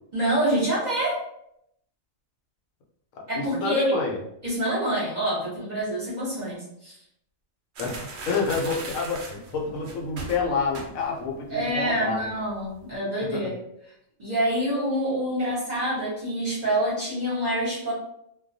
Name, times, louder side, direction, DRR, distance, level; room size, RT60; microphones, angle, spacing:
voice 1, 0.1-1.2 3.3-3.9 4.4-6.9 11.5-13.5 14.2-17.9, right 1 dB, 40° right, -7 dB, 0.8 m, -26 dB
voice 2, 3.1-4.2 7.8-12.2 13.3-13.5, left 4 dB, 80° left, 0 dB, 1.0 m, -28 dB
sound 1, 7.8-11.3 11.6-11.9 12.2-12.8, right 3 dB, 85° right, 0.4 m, -38 dB
2.2 x 2.2 x 2.5 m, 0.76 s
omnidirectional pair, 1.4 m